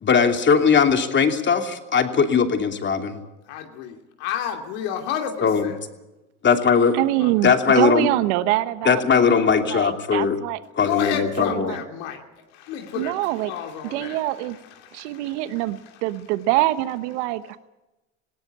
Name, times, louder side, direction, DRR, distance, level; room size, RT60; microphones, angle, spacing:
voice 1, 0.0-3.2 5.4-5.6 6.4-7.0 7.4-8.1 8.8-10.4 10.8-11.7, left 6 dB, 35° left, 5 dB, 2.9 m, -19 dB
voice 2, 3.4-5.8 7.2-7.4 10.8-12.2 12.5-16.0, left 8 dB, 85° left, 3 dB, 2.8 m, -32 dB
voice 3, 6.9-10.6 11.5-11.8 13.0-13.5 13.9-14.6 14.9-17.6, right 16 dB, 85° right, 13 dB, 1.1 m, -25 dB
19.5 x 17.5 x 8.7 m, 1.0 s
supercardioid pair, 105°, 34 cm